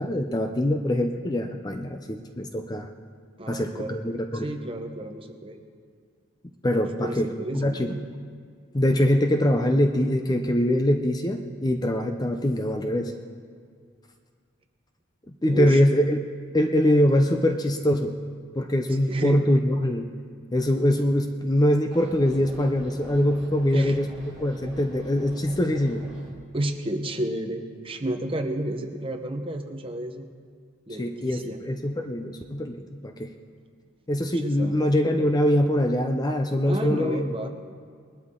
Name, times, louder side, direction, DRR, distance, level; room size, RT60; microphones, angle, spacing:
voice 1, 0.0-2.9 3.5-4.5 6.6-8.0 8.7-13.1 15.4-16.2 16.5-18.2 18.5-20.1 20.5-26.1 31.0-33.3 34.1-37.5, left 1 dB, 20° left, 5 dB, 0.5 m, -23 dB
voice 2, 3.4-4.0 4.4-5.6 7.0-8.0 15.5-15.8 18.9-19.4 23.7-24.0 26.5-30.3 30.9-31.6 34.4-34.7 36.7-37.5, right 1 dB, 25° right, 5 dB, 0.9 m, -31 dB
sound 1, 21.9-26.3, equal, 5° right, 4.2 m, -44 dB
20.5 x 12.0 x 3.8 m, 2.1 s
head